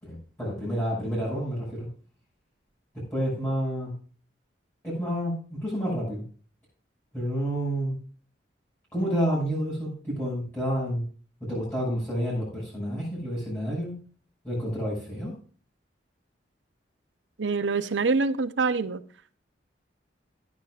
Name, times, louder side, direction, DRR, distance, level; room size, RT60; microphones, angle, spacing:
voice 1, 0.0-1.9 2.9-3.9 4.8-6.2 7.1-8.0 8.9-11.0 11.4-13.9 14.4-15.3, equal, 10° left, -8 dB, 6.3 m, -29 dB
voice 2, 17.4-19.0, right 4 dB, 80° right, 13 dB, 0.8 m, -25 dB
15.0 x 10.5 x 2.5 m, 0.40 s
head